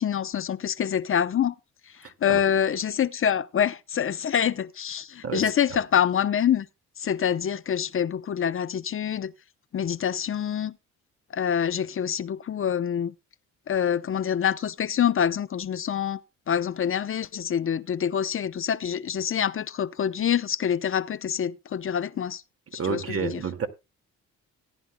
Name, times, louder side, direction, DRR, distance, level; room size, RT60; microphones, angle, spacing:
voice 1, 0.0-1.5 2.2-6.7 7.0-9.3 9.7-10.7 11.3-13.1 13.7-16.2 16.5-22.4 22.7-23.4, left 8 dB, 45° left, 0.7 m, -26 dB
voice 2, 22.7-23.7, right 6 dB, 50° right, 2.1 m, -29 dB
18.5 x 10.5 x 2.2 m
cardioid pair, 90°, 30 cm